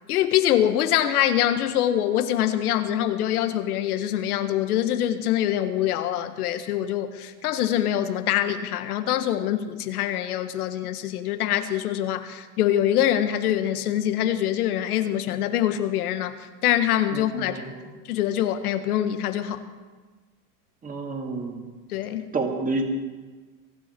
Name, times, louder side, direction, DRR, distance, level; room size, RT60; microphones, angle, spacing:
voice 1, 0.1-17.6 18.1-19.6 21.9-22.3, left 11 dB, 75° left, 9 dB, 1.6 m, -24 dB
voice 2, 20.8-21.6 22.3-22.8, right 3 dB, 20° right, 2 dB, 2.5 m, -28 dB
23.5 x 11.5 x 4.6 m, 1.3 s
hypercardioid pair, 120°, 45 cm